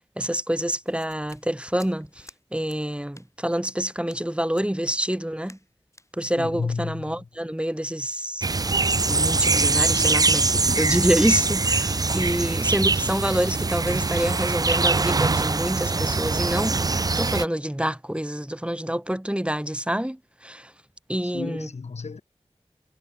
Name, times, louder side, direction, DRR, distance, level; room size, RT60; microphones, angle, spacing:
voice 1, 0.2-5.6 6.1-8.5 9.1-16.8 17.2-20.7 21.1-21.7, equal, 10° right, 2.8 m, -27 dB
sound 1, 0.9-2.4 2.7-2.8 3.1-3.3 3.6-3.8 4.1-4.2 4.5-4.7 5.0-5.2 5.5-5.7 5.9-6.1, left 1 dB, 25° left, 4.8 m, -51 dB
voice 2, 6.4-7.3 12.1-12.4 21.2-22.2, left 4 dB, 85° left, 0.9 m, -32 dB
sound 2, 8.4-17.5, right 3 dB, 35° right, 0.4 m, -23 dB
wide cardioid pair, 45°, 11 cm